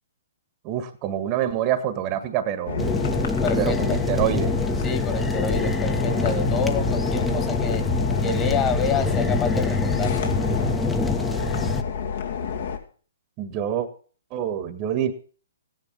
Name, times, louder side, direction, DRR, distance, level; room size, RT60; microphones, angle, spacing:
voice 1, 0.6-3.0 3.6-4.5 13.4-13.9 14.3-15.1, right 10 dB, 35° right, 11 dB, 1.7 m, -26 dB
sound 1, 2.7-12.8, left 5 dB, 60° left, 2.5 m, -29 dB
sound 2, 2.8-11.8, left 3 dB, 5° left, 1.2 m, -25 dB
voice 2, 3.4-4.0 4.8-7.9 8.2-10.2, left 6 dB, 25° left, 8 dB, 2.2 m, -28 dB
15.5 x 10.5 x 5.5 m, 0.42 s
hypercardioid pair, 130°, 0 cm